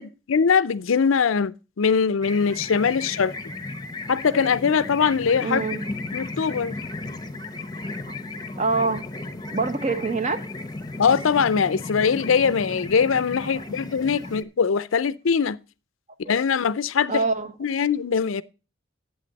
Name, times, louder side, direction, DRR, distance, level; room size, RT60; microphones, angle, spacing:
voice 1, 0.0-3.3 4.1-5.6 6.1-6.7 11.0-15.6 16.2-17.2 17.6-18.4, left 6 dB, 75° left, 0.5 m, -22 dB
sound 1, 2.2-14.4, left 2 dB, 20° left, 0.9 m, -35 dB
voice 2, 5.4-5.9 8.5-9.0 9.5-10.4 13.5-13.6 16.2-16.4 17.1-17.5, right 3 dB, 35° right, 0.9 m, -25 dB
11.5 x 8.3 x 4.0 m
head